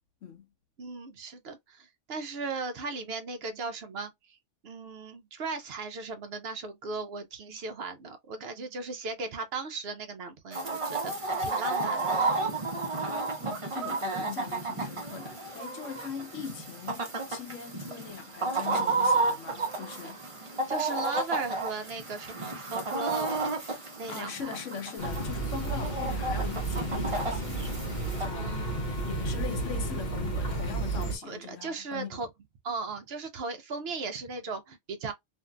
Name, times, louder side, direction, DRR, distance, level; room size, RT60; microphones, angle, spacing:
voice 1, 0.8-4.4 4.6-12.2 20.7-23.6 24.0-24.6 28.3-28.9 31.2-32.3 32.6-35.1, right 4 dB, 60° right, 0.8 m, -37 dB
Chicken rooster, 10.5-28.3, right 3 dB, 30° right, 0.7 m, -32 dB
voice 2, 13.4-20.2 24.1-27.6 28.2-28.6 29.0-32.2, left 6 dB, 85° left, 1.2 m, -41 dB
sound 1, 25.0-31.2, right 2 dB, 45° left, 0.8 m, -32 dB
2.7 x 2.5 x 2.2 m
omnidirectional pair, 1.2 m